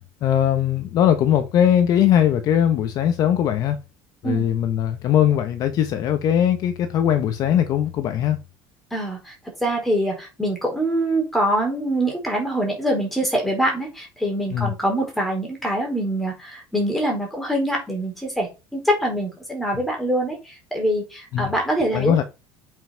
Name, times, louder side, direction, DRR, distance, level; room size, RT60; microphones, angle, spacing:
voice 1, 0.2-3.8 4.2-8.4 14.5-14.7 21.3-21.5 21.9-22.2, left 10 dB, 45° left, 1.1 m, -20 dB
voice 2, 8.9-9.3 9.6-22.2, right 1 dB, ahead, 4.3 m, -24 dB
7.8 x 5.8 x 5.8 m
cardioid pair, 160°, 9 cm